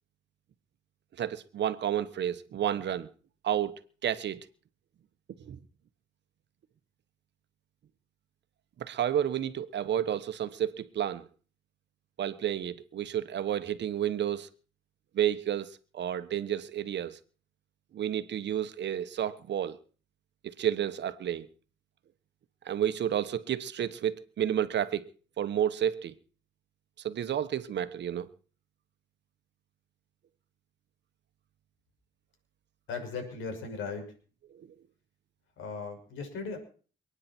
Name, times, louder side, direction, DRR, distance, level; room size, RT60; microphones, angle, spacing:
voice 1, 1.2-3.1 3.4-4.4 5.4-5.6 8.8-11.2 12.2-14.5 15.1-17.2 17.9-19.8 20.4-21.5 22.6-25.1 25.4-26.1 27.0-28.3 34.5-34.6, right 10 dB, 60° right, 1.3 m, -31 dB
voice 2, 32.9-34.1 35.6-36.6, left 4 dB, 85° left, 6.2 m, -37 dB
28.0 x 9.8 x 4.5 m
cardioid pair, 90°, 20 cm